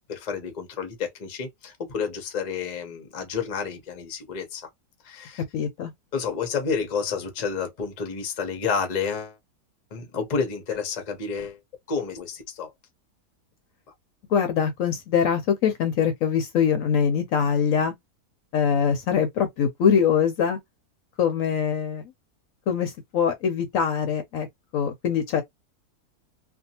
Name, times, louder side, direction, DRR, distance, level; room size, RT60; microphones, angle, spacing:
voice 1, 0.1-4.7 5.0-5.4 6.1-9.4 9.9-11.6 11.9-12.7, left 5 dB, 45° left, 0.5 m, -30 dB
voice 2, 5.5-5.9 14.3-17.9 18.5-20.6 21.2-22.1 22.7-24.5 24.7-25.4, left 7 dB, 70° left, 0.8 m, -23 dB
2.5 x 2.3 x 2.7 m
omnidirectional pair, 1.7 m